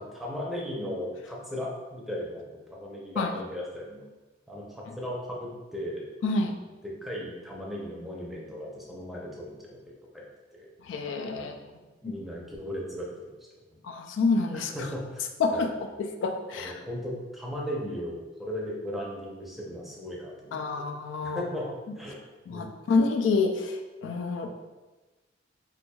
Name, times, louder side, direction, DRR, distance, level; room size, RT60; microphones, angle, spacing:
voice 1, 0.1-4.0 4.5-6.0 6.8-9.8 10.1-10.3 10.5-10.7 11.3-11.6 12.0-13.3 13.7-13.8 14.5-15.8 16.5-20.8 21.2-21.7 22.0-22.2 22.5-22.7, equal, ahead, -4 dB, 0.6 m, -37 dB
voice 2, 6.2-6.6 10.9-11.6 12.0-12.2 13.8-14.7 15.4-15.7 16.0-16.7 20.5-21.4 22.5-24.5, left 4 dB, 75° left, 6 dB, 0.3 m, -27 dB
4.4 x 2.6 x 2.2 m, 1.2 s
head